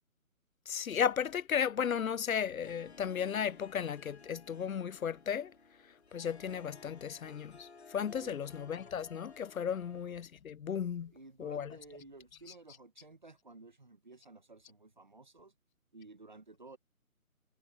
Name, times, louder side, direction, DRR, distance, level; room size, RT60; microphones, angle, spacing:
voice 1, 0.7-5.5 6.1-11.1 11.4-11.7, left 8 dB, 70° left, 0.6 m, -35 dB
Harp, 2.4-10.3, left 4 dB, 45° left, 1.9 m, -56 dB
voice 2, 11.1-15.5 15.9-16.8, right 3 dB, 30° right, 1.1 m, -54 dB
hypercardioid pair, 180°, 44 cm